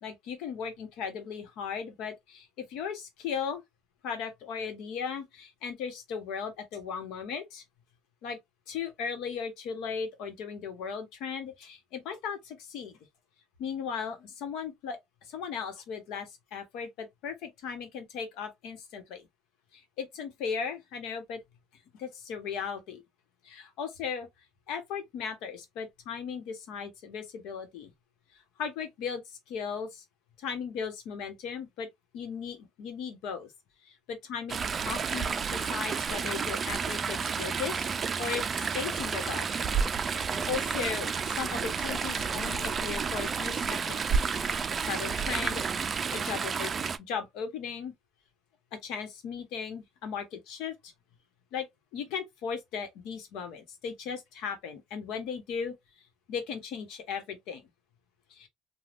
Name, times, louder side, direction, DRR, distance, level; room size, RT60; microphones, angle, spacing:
voice 1, 0.0-3.6 4.0-7.6 8.2-8.4 8.7-13.0 13.6-15.0 15.3-19.3 19.7-21.4 22.0-23.0 23.4-24.3 24.7-27.9 28.6-30.0 30.4-31.9 32.1-33.5 33.8-34.6 34.8-37.9 38.2-39.5 40.2-44.3 44.8-46.7 47.1-47.9 48.7-50.9 51.5-51.7 51.9-55.7 56.3-57.6 58.3-58.5, left 6 dB, 70° left, 1.1 m, -37 dB
Chatter / Stream, 34.5-47.0, right 5 dB, 30° right, 0.4 m, -31 dB
3.3 x 2.3 x 2.6 m
cardioid pair, 125°, 0 cm